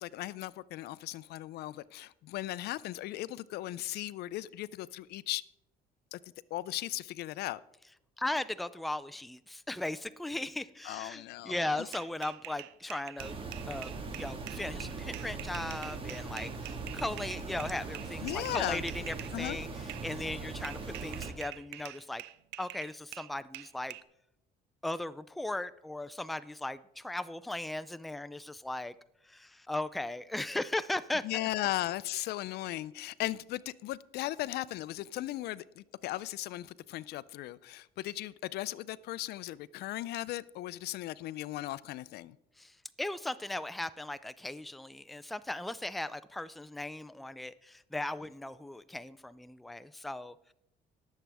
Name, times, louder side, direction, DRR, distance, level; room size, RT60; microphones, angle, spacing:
voice 1, 0.0-5.4 6.1-6.2 6.5-7.6 10.8-11.9 18.2-18.8 19.3-19.6 31.2-42.4, left 16 dB, 70° left, 19 dB, 0.4 m, -37 dB
voice 2, 8.2-13.4 13.7-22.2 22.6-24.0 24.8-28.9 29.2-31.5 42.6-50.5, left 2 dB, ahead, 13 dB, 0.4 m, -37 dB
sound 1, 11.7-19.4 19.9-20.1 20.6-24.0, right 16 dB, 85° right, 0.5 m, -46 dB
sound 2, 13.2-21.3, right 4 dB, 30° right, 1.7 m, -40 dB
18.5 x 7.3 x 3.4 m, 0.83 s
cardioid pair, 110°, 17 cm